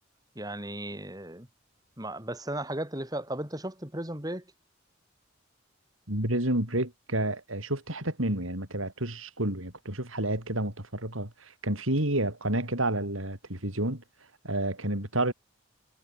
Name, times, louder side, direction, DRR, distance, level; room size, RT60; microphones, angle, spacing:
voice 1, 0.4-1.5 2.0-4.4, right 1 dB, 20° right, 4.0 m, -35 dB
voice 2, 6.1-14.0 14.4-15.3, right 1 dB, 85° right, 7.3 m, -30 dB
head